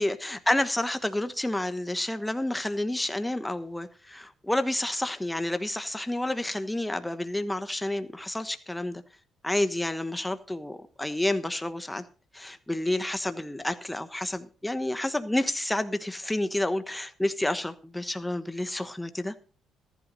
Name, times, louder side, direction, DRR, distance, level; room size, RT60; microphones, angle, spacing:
voice 1, 0.0-9.0 9.4-12.0 12.3-19.3, left 1 dB, 10° left, 1.2 m, -29 dB
14.5 x 11.5 x 4.1 m
cardioid pair, 90°, 0 cm